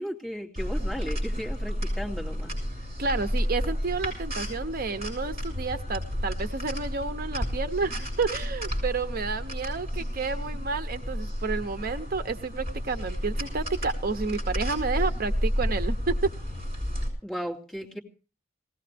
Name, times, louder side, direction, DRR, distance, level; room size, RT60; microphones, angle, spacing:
voice 1, 0.0-2.5 17.2-18.0, equal, 5° left, -3 dB, 2.7 m, -35 dB
sound 1, 0.6-17.1, equal, 35° right, 7.0 m, -31 dB
voice 2, 3.0-16.1, right 4 dB, 50° right, 10 dB, 0.7 m, -30 dB
19.5 x 17.0 x 3.4 m, 0.37 s
head